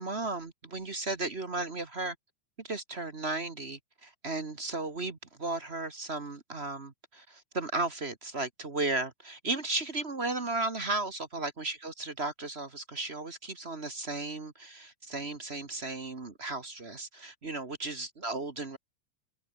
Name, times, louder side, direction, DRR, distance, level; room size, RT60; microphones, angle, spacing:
voice 1, 0.0-2.1 2.6-18.8, right 2 dB, 30° right, 1.2 m, -35 dB
omnidirectional pair, 3.7 m